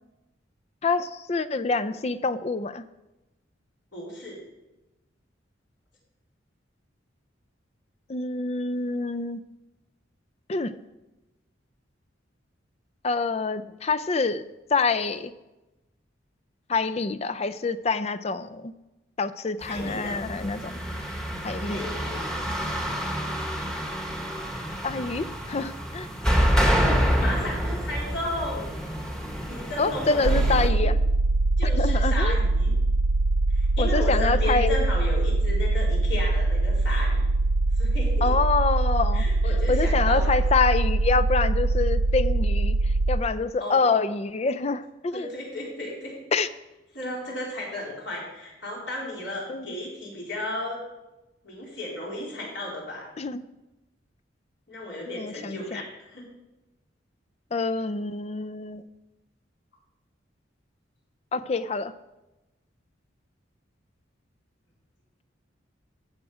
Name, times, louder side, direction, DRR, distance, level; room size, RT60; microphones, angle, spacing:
voice 1, 0.8-2.8 8.1-9.4 10.5-10.7 13.0-15.3 16.7-18.7 19.2-20.7 21.4-21.8 24.8-26.1 29.8-31.0 31.6-32.4 33.8-34.8 38.2-39.3 39.7-45.3 46.3-46.5 49.5-49.7 53.2-53.5 55.1-55.8 57.5-58.8 61.3-61.9, left 4 dB, 35° left, 14 dB, 0.4 m, -26 dB
voice 2, 3.9-4.4 19.7-20.2 21.6-22.3 26.5-28.7 29.5-30.9 31.6-32.7 33.5-37.2 37.7-38.3 39.1-40.2 43.6-43.9 45.1-46.1 46.9-50.8 51.4-53.1 54.7-56.2, left 1 dB, 70° left, -4 dB, 4.1 m, -34 dB
sound 1, 19.6-30.7, equal, 5° left, 1.1 m, -28 dB
sound 2, 30.2-43.2, right 2 dB, 85° right, 0.5 m, -23 dB
13.0 x 7.7 x 4.9 m, 1.0 s
head